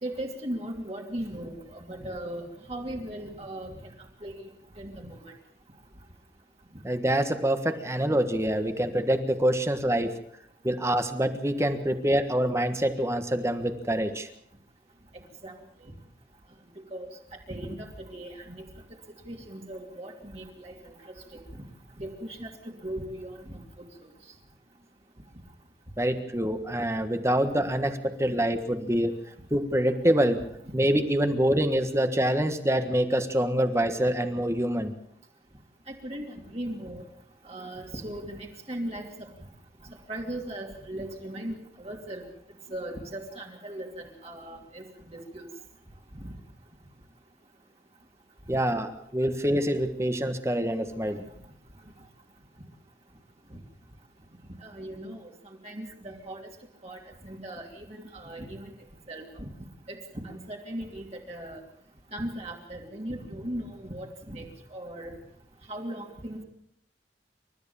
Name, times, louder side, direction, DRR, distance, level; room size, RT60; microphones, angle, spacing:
voice 1, 0.0-3.7 4.2-4.3 4.8-5.3 15.4-15.5 16.9-17.1 17.5-18.6 19.3-20.9 21.3-21.4 22.0-23.9 35.9-37.0 37.4-39.3 40.1-42.2 42.7-45.5 46.2-46.3 53.5-53.6 54.6-55.2 55.4-56.4 56.8-58.7 59.1-59.5 59.9-60.0 60.2-61.6 62.1-65.2 65.7-66.4, right 1 dB, 35° right, 0 dB, 2.9 m, -38 dB
voice 2, 6.8-10.2 10.6-14.3 26.0-29.2 29.5-30.4 30.7-34.9 48.5-51.2, right 1 dB, 15° right, 8 dB, 1.5 m, -26 dB
29.0 x 13.5 x 7.2 m, 0.73 s
head